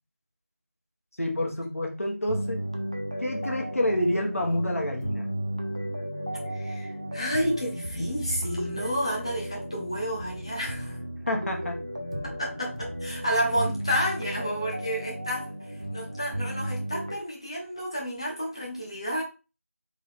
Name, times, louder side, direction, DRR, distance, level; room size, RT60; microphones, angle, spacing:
voice 1, 1.2-2.6 3.2-5.3 11.3-11.8, left 1 dB, 70° left, 1 dB, 1.3 m, -28 dB
sound 1, 2.3-17.1, equal, 25° right, 0.4 m, -34 dB
voice 2, 6.4-11.0 12.4-19.2, equal, 20° left, -3 dB, 0.8 m, -31 dB
3.6 x 2.8 x 3.6 m, 0.31 s
figure-of-eight pair, 175°, 8 cm